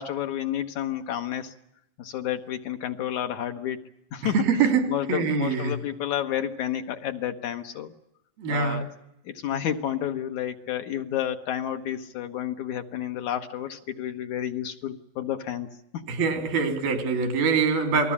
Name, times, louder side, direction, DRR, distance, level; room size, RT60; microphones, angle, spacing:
voice 1, 0.0-1.5 2.0-3.8 4.1-4.4 4.9-7.9 8.5-8.9 9.3-15.7 15.9-16.1, left 10 dB, 65° left, 6 dB, 2.4 m, -30 dB
voice 2, 4.3-5.8 8.4-8.8 16.1-18.1, right 5 dB, 85° right, 7 dB, 4.8 m, -24 dB
28.0 x 20.5 x 8.6 m, 0.80 s
omnidirectional pair, 4.1 m